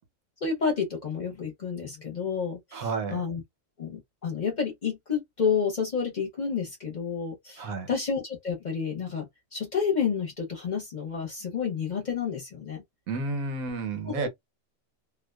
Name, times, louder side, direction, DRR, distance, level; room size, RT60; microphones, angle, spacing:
voice 1, 0.4-3.4 3.8-12.8 14.1-14.3, left 6 dB, 40° left, 0.8 m, -30 dB
voice 2, 2.7-3.2 7.6-7.9 13.1-14.3, right 3 dB, 90° right, 1.1 m, -31 dB
2.5 x 2.2 x 2.2 m
omnidirectional pair, 1.4 m